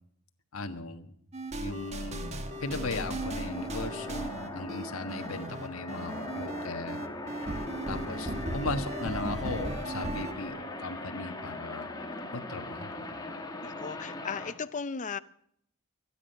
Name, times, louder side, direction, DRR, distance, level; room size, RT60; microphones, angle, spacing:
voice 1, 0.5-1.1 1.6-2.3 2.6-7.5 7.9-11.9 12.3-13.2, left 3 dB, 70° left, 1.5 m, -37 dB
sound 1, 1.3-10.3, right 1 dB, 30° right, 1.3 m, -37 dB
sound 2, 1.8-14.5, left 2 dB, 20° left, 1.7 m, -40 dB
voice 2, 13.6-15.2, left 5 dB, 35° left, 0.6 m, -36 dB
24.0 x 10.0 x 5.6 m
head